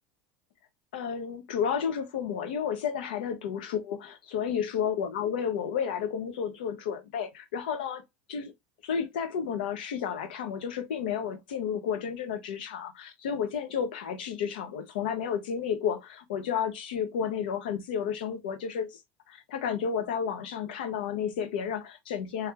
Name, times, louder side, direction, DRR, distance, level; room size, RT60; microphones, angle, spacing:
voice 1, 0.9-8.0 8.3-8.5 8.8-19.0 19.3-22.5, left 7 dB, 85° left, 0.8 m, -32 dB
3.3 x 2.3 x 2.8 m
supercardioid pair, 110°, 5 cm